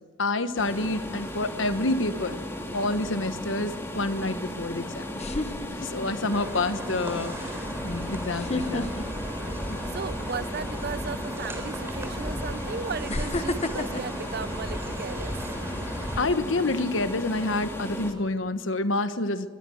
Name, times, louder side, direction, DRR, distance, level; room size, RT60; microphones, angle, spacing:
voice 1, 0.2-2.5 2.7-5.0 5.7-8.9 16.2-19.5, left 2 dB, 70° left, 10 dB, 1.3 m, -28 dB
sound 1, 0.6-18.1, left 1 dB, 15° left, 2.6 m, -36 dB
sound 2, 2.0-2.5 4.4-4.5 5.1-6.3 6.7-7.0 8.3-10.1 10.5-10.8 11.8-11.9 13.1-15.3 15.8-16.1, left 2 dB, 35° left, 1.1 m, -32 dB
sound 3, 6.3-16.2, equal, 15° right, 3.6 m, -36 dB
voice 2, 9.9-15.3, right 5 dB, 55° right, 15 dB, 0.7 m, -36 dB
24.5 x 23.0 x 6.5 m, 1.5 s
head